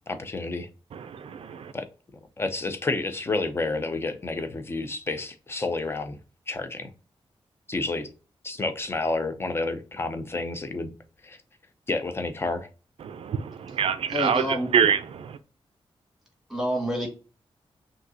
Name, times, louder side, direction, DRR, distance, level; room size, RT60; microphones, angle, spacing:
voice 1, 0.1-0.7 1.7-1.8 2.4-6.2 6.5-6.9 7.7-8.1 8.4-10.9 11.2-11.4 11.9-12.7, left 3 dB, 25° left, 0.6 m, -30 dB
voice 2, 0.9-1.7 13.0-15.4, right 7 dB, 75° right, 0.4 m, -26 dB
voice 3, 14.1-14.7 16.5-17.1, equal, ahead, 1.7 m, -27 dB
6.2 x 2.7 x 2.7 m
wide cardioid pair, 160°, 10 cm